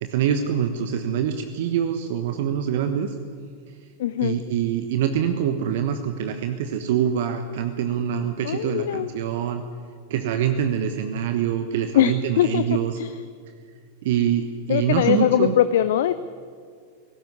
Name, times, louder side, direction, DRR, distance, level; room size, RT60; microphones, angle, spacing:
voice 1, 0.0-3.1 4.2-9.6 10.1-13.0 14.0-15.6, right 9 dB, 55° right, 7 dB, 1.2 m, -25 dB
voice 2, 4.0-4.4 8.4-9.1 12.0-12.6 13.0-13.1 14.7-16.1, left 11 dB, 55° left, 13 dB, 0.6 m, -21 dB
18.5 x 17.0 x 9.6 m, 2.1 s
figure-of-eight pair, 90°, 0 cm